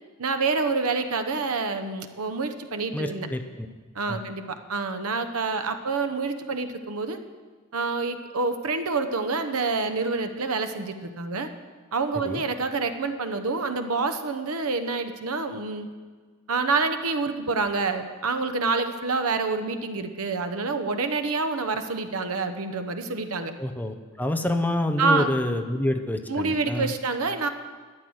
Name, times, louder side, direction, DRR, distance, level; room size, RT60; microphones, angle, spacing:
voice 1, 0.2-3.3 3.9-7.2 7.7-11.5 11.9-15.9 16.5-23.5 25.0-25.3 26.3-27.5, right 4 dB, 90° right, 8 dB, 1.0 m, -27 dB
voice 2, 2.9-3.7 4.1-4.2 12.2-12.4 23.6-26.9, left 1 dB, 10° left, 6 dB, 0.7 m, -27 dB
13.0 x 9.9 x 6.3 m, 1.5 s
head